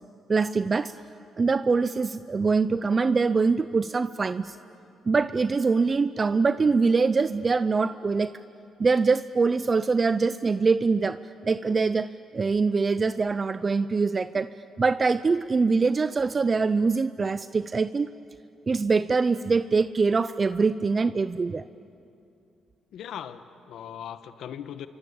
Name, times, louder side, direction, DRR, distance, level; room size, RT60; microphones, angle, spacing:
voice 1, 0.3-0.9 1.4-4.6 5.1-8.3 8.8-12.1 12.3-14.5 14.8-18.1 18.7-21.6, right 4 dB, 35° right, 13 dB, 0.6 m, -23 dB
voice 2, 22.9-24.9, left 9 dB, 75° left, 11 dB, 1.4 m, -39 dB
27.5 x 24.0 x 8.7 m, 2.6 s
cardioid pair, 90°, 0 cm